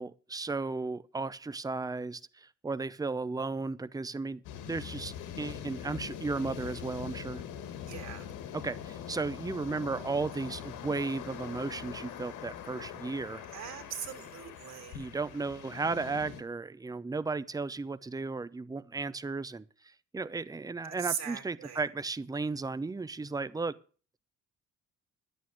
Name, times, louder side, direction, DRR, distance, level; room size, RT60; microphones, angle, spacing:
voice 1, 0.0-7.4 8.5-13.4 14.9-19.6 20.1-23.8, right 3 dB, 10° right, 0.6 m, -35 dB
sound 1, 4.4-16.4, left 9 dB, 90° left, 1.6 m, -43 dB
voice 2, 7.9-8.3 13.5-15.1 20.8-21.8, right 8 dB, 60° right, 3.4 m, -40 dB
11.5 x 8.5 x 6.4 m
cardioid pair, 90°, 30 cm